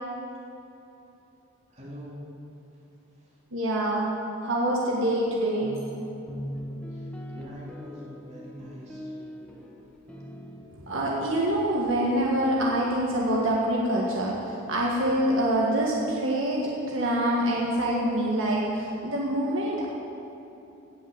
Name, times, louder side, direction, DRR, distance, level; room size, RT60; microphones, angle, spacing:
voice 1, 1.7-2.2 6.9-7.0 7.3-9.1, equal, 35° right, -6 dB, 3.2 m, -43 dB
voice 2, 3.5-4.1 4.4-5.8 10.8-19.9, right 1 dB, 70° right, -4 dB, 1.7 m, -25 dB
sound 1, 5.6-10.7, equal, 5° left, 1.3 m, -40 dB
17.0 x 6.1 x 7.9 m, 2.9 s
head